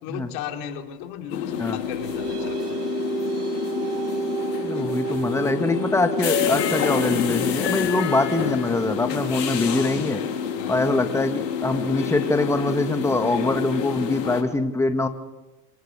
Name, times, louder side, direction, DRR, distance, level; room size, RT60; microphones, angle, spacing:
voice 1, 0.0-2.6 10.6-10.8, left 9 dB, 60° left, 3 dB, 3.4 m, -35 dB
sound 1, 1.3-14.4, left 8 dB, 90° left, 4.0 m, -28 dB
sound 2, 1.5-12.5, right 5 dB, 75° right, 4.7 m, -33 dB
voice 2, 4.6-10.2 10.7-15.1, left 2 dB, 5° left, 8 dB, 1.5 m, -23 dB
25.0 x 19.0 x 6.7 m, 1.1 s
hypercardioid pair, 110°, 48 cm